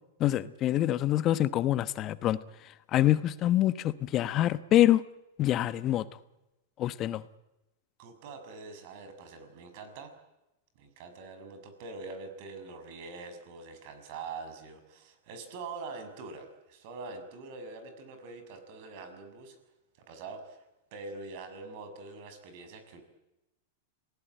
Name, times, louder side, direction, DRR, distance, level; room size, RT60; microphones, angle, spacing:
voice 1, 0.2-2.4 2.9-5.0 5.4-6.0 6.8-7.2, left 13 dB, 35° left, 14 dB, 1.0 m, -25 dB
voice 2, 8.0-10.1 10.7-19.6 20.1-20.6 20.9-23.0, right 4 dB, 55° right, 9 dB, 6.5 m, -44 dB
27.5 x 18.0 x 9.1 m, 0.94 s
hypercardioid pair, 115°, 0 cm